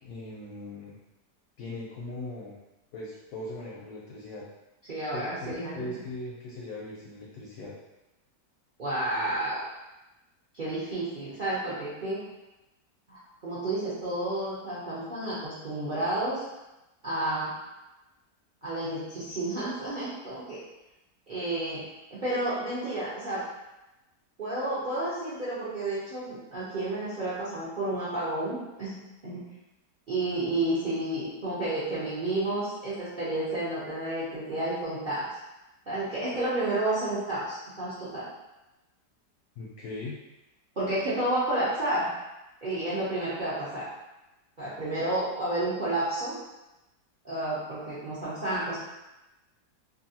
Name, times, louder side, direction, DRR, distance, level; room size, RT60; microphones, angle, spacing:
voice 1, 0.0-1.0 1.6-2.6 2.9-4.4 5.1-7.7 39.6-40.2, left 2 dB, 70° left, -4 dB, 0.9 m, -39 dB
voice 2, 4.9-6.0 8.8-9.7 10.5-12.2 13.1-16.4 17.0-17.5 18.6-20.6 21.3-21.8 22.1-23.4 24.4-29.4 30.1-35.3 35.9-38.3 40.8-42.1 42.6-43.9 44.6-46.4 47.2-48.8, right 1 dB, 65° right, -11 dB, 0.5 m, -31 dB
2.7 x 2.5 x 2.7 m, 0.99 s
omnidirectional pair, 1.8 m